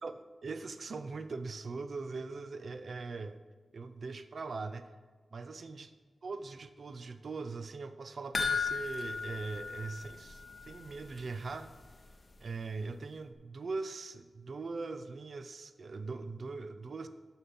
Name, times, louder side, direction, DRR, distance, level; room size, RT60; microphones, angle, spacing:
voice 1, 0.0-3.4 3.7-4.9 5.3-5.9 6.2-11.7 12.4-17.1, right 4 dB, 55° right, 10 dB, 0.5 m, -41 dB
sound 1, 8.3-10.9 11.2-11.3 11.7-11.8, left 5 dB, 35° left, 0.7 m, -35 dB
7.9 x 5.9 x 5.4 m, 1.5 s
wide cardioid pair, 115°, 0 cm